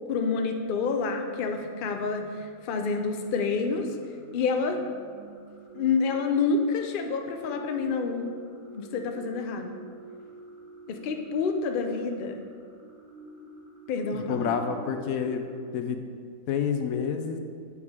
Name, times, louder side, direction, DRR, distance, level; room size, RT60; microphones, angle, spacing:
voice 1, 0.1-3.9 4.3-4.8 5.7-8.3 8.7-9.7 10.9-12.4 13.9-14.6, left 4 dB, 55° left, 4 dB, 0.6 m, -28 dB
sound 1, 1.5-15.5, right 2 dB, 30° right, 1.4 m, -48 dB
voice 2, 14.1-16.0 16.5-17.4, left 7 dB, 90° left, 7 dB, 1.0 m, -29 dB
8.2 x 4.9 x 3.5 m, 2.1 s
omnidirectional pair, 1.4 m